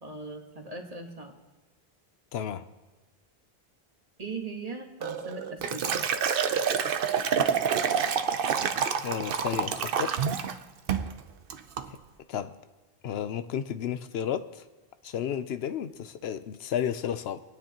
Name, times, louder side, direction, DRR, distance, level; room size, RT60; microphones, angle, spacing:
voice 1, 0.0-1.3 4.2-6.0, right 3 dB, 40° right, 3 dB, 1.4 m, -39 dB
voice 2, 2.3-2.7 9.0-10.3 12.3-12.6 13.0-14.7 15.0-17.4, left 9 dB, 80° left, 11 dB, 0.8 m, -32 dB
Liquid, 5.0-10.6 10.9-11.1 11.5-11.9, right 7 dB, 65° right, 0.8 m, -28 dB
27.0 x 9.6 x 2.9 m, 1.2 s
omnidirectional pair, 1.0 m